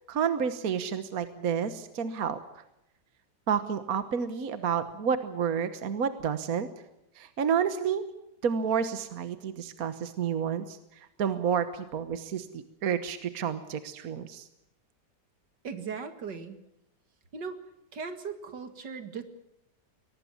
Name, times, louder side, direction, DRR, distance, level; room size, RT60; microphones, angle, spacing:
voice 1, 0.1-2.4 3.5-6.7 7.2-8.0 8.4-10.8 11.2-14.5, right 7 dB, 55° right, 11 dB, 1.6 m, -30 dB
voice 2, 15.6-16.6 17.3-17.6 17.9-19.2, right 5 dB, 75° right, 8 dB, 2.5 m, -38 dB
23.0 x 19.0 x 7.2 m, 0.83 s
omnidirectional pair, 1.9 m